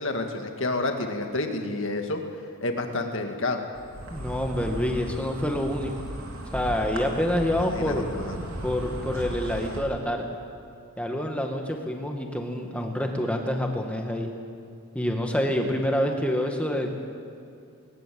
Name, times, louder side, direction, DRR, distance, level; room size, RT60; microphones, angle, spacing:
voice 1, 0.0-2.2 2.6-3.6 7.6-8.3, left 2 dB, 60° left, 4 dB, 2.1 m, -29 dB
Insect, 3.7-9.8, right 1 dB, 70° right, 3.3 m, -36 dB
voice 2, 4.1-5.9 6.5-8.1 8.6-10.2 11.0-14.3 14.9-17.0, left 1 dB, 5° left, 2 dB, 2.0 m, -27 dB
20.0 x 19.5 x 7.8 m, 2.5 s
head